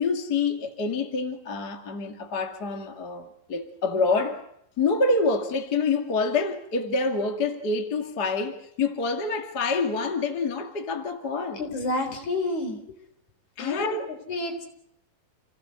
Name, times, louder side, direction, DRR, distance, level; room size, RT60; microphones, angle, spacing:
voice 1, 0.0-4.4 4.8-11.6 13.6-14.1, left 3 dB, 30° left, 2.4 m, -27 dB
voice 2, 11.6-12.8 13.6-14.0 14.3-14.7, left 2 dB, 50° left, 5.2 m, -29 dB
29.5 x 18.5 x 8.1 m
omnidirectional pair, 4.3 m